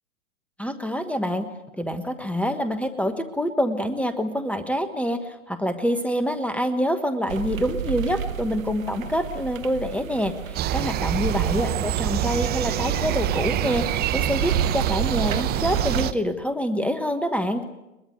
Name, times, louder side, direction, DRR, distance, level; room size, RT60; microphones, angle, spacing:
voice 1, 0.6-1.5 1.8-17.6, equal, 5° left, 9 dB, 1.3 m, -26 dB
sound 1, 7.3-16.1, right 9 dB, 75° right, 1.0 m, -31 dB
sound 2, 10.6-16.1, right 12 dB, 25° right, 1.0 m, -26 dB
22.0 x 22.0 x 8.1 m, 0.96 s
hypercardioid pair, 110°, 41 cm